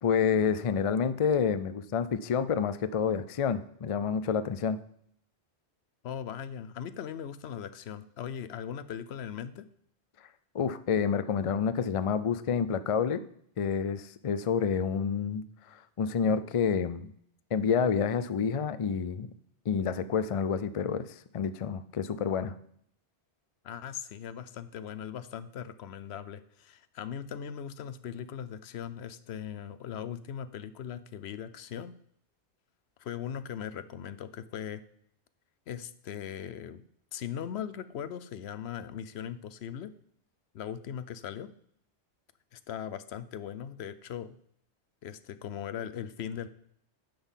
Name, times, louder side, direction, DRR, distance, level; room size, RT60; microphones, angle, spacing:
voice 1, 0.0-4.8 10.5-13.2 13.6-15.4 15.7-17.1 17.5-19.3 19.7-21.1 21.3-22.5, left 6 dB, 50° left, 13 dB, 0.4 m, -28 dB
voice 2, 6.0-9.7 23.6-31.9 33.0-34.8 35.7-36.8 37.1-39.9 40.5-41.5 42.5-44.3 45.0-46.5, left 9 dB, 70° left, 13 dB, 0.9 m, -39 dB
10.5 x 3.9 x 7.2 m, 0.66 s
omnidirectional pair, 1.2 m